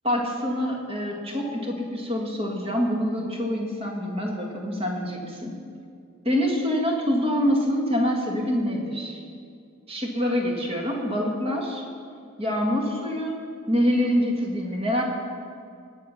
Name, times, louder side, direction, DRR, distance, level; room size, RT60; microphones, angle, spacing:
voice 1, 0.0-5.6 6.2-9.2 9.9-11.8 12.4-13.4 13.7-15.0, equal, 25° right, 0 dB, 1.7 m, -25 dB
18.0 x 6.6 x 5.7 m, 2.3 s
head